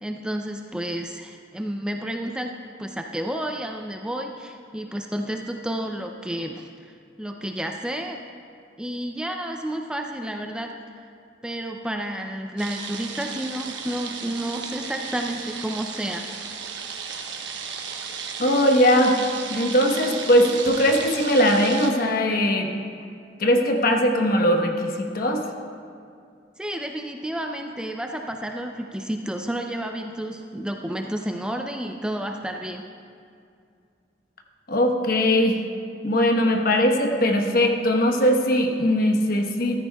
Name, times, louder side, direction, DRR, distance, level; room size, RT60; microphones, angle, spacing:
voice 1, 0.0-2.5 2.8-6.7 7.2-8.2 8.8-10.7 11.4-16.2 26.6-32.8, right 1 dB, 5° right, 3 dB, 0.4 m, -31 dB
sound 1, 12.6-21.9, right 6 dB, 80° right, 1.1 m, -35 dB
voice 2, 18.4-19.2 19.5-22.7 23.4-25.4 34.7-35.6 36.0-39.9, equal, 55° left, 3 dB, 1.0 m, -20 dB
14.5 x 13.5 x 2.3 m, 2.3 s
head